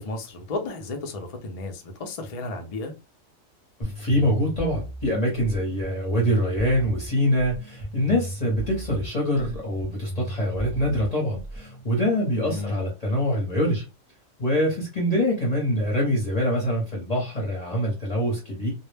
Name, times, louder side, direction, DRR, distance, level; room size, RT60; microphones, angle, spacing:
voice 1, 0.0-2.9 12.4-12.9, left 2 dB, 65° left, 0.3 m, -33 dB
voice 2, 3.8-13.8 14.4-18.7, equal, 35° left, 0.7 m, -24 dB
sound 1, 3.8-11.8, right 1 dB, 15° right, 0.5 m, -36 dB
2.2 x 2.1 x 3.2 m
omnidirectional pair, 1.4 m